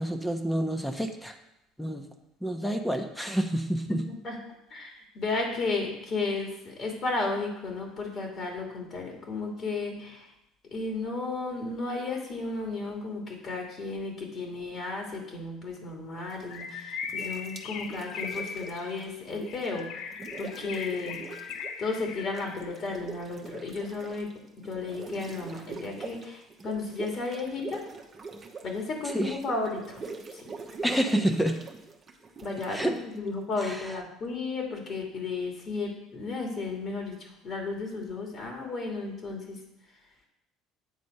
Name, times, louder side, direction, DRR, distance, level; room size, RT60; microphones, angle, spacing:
voice 1, 0.0-1.4 1.8-2.1 2.4-4.1 29.0-29.4 30.8-31.6 32.7-33.0 33.6-34.0, right 1 dB, 5° left, 4 dB, 1.1 m, -28 dB
voice 2, 4.7-10.3 10.7-21.2 21.8-24.3 24.6-27.8 28.6-30.0 30.3-30.5 32.4-37.1 37.4-39.6, left 3 dB, 50° left, 1 dB, 2.4 m, -33 dB
sound 1, 16.3-16.7 17.0-19.8 20.1-21.8 22.1-33.6, right 4 dB, 35° right, 1.2 m, -43 dB
Bird, 16.5-22.8, left 6 dB, 65° left, 0.7 m, -39 dB
8.1 x 4.2 x 6.5 m, 0.88 s
hypercardioid pair, 65°, 0 cm